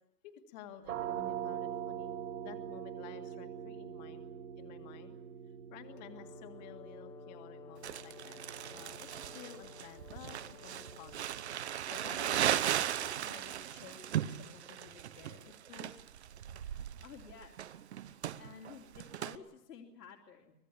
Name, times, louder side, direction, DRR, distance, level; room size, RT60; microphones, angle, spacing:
voice 1, 0.2-2.1 2.4-4.2 4.6-5.1 5.7-8.4 8.7-11.2 11.9-16.0, left 9 dB, 25° left, 6 dB, 2.0 m, -53 dB
sound 1, 0.8-12.4, right 9 dB, 65° right, 3.5 m, -44 dB
Brass instrument, 5.9-11.9, left 9 dB, 10° left, 1.1 m, -55 dB
Crumpling crinkling, 7.8-19.3, right 11 dB, 45° right, 1.0 m, -37 dB
voice 2, 16.5-17.6 18.0-20.5, left 6 dB, 75° left, 0 dB, 3.3 m, -53 dB
24.5 x 19.5 x 8.5 m, 0.89 s
hypercardioid pair, 165°, 48 cm